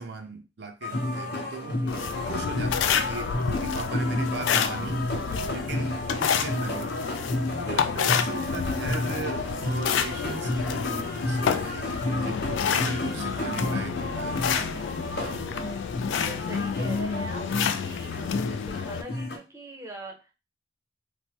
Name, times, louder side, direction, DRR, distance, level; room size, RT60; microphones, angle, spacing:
voice 1, 0.0-1.8 2.2-5.1 5.5-7.0 7.5-14.8 15.1-15.6, right 4 dB, 60° right, 5 dB, 0.5 m, -38 dB
sound 1, 0.8-19.4, left 1 dB, 55° left, 0.8 m, -32 dB
voice 2, 1.6-2.2 5.3-5.6 7.5-8.2 12.5-13.4 16.1-17.4 17.8-20.3, right 1 dB, 15° right, 1 dB, 0.6 m, -44 dB
sound 2, 1.9-19.0, left 7 dB, 75° left, 0.3 m, -29 dB
3.1 x 2.1 x 2.7 m, 0.28 s
head